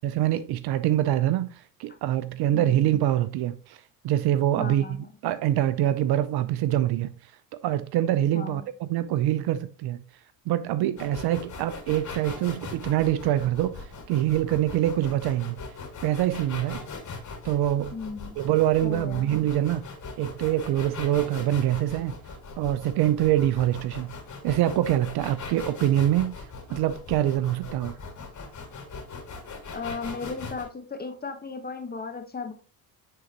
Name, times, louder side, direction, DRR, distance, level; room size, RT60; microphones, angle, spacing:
voice 1, 0.0-7.1 7.6-10.0 10.5-15.6 16.0-16.8 17.4-17.9 18.4-19.8 20.2-22.1 22.6-24.1 24.4-26.3 26.7-28.0, right 13 dB, 55° right, 0.5 m, -25 dB
voice 2, 4.6-5.1 8.3-8.7 17.9-18.3 18.8-19.3 29.7-32.5, left 4 dB, 20° left, 1.2 m, -35 dB
sound 1, 11.0-30.6, left 4 dB, 40° left, 2.5 m, -40 dB
9.3 x 3.8 x 2.9 m
supercardioid pair, 80°, 47 cm